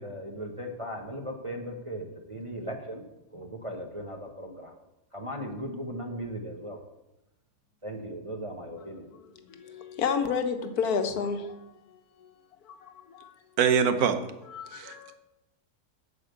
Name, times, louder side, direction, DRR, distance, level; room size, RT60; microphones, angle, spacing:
voice 1, 0.0-3.0 3.3-4.7 5.1-6.8 7.8-9.0, equal, 25° right, 0.9 m, -37 dB
voice 2, 9.0-12.3 12.6-13.3 14.4-15.1, left 6 dB, 70° left, 1.5 m, -32 dB
voice 3, 13.6-14.2 14.7-15.1, right 7 dB, 70° right, 1.4 m, -24 dB
8.2 x 6.7 x 8.0 m
omnidirectional pair, 1.7 m